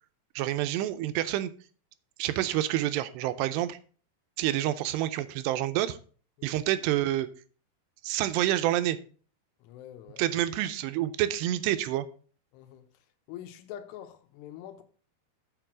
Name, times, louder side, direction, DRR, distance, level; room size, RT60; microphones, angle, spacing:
voice 1, 0.4-1.5 2.2-3.8 4.4-6.0 6.4-7.3 8.0-9.0 10.2-12.1, right 13 dB, 85° right, 2.6 m, -28 dB
voice 2, 9.6-10.2 12.5-12.9 13.3-14.8, left 11 dB, 80° left, 2.8 m, -45 dB
6.8 x 5.9 x 6.0 m
omnidirectional pair, 5.0 m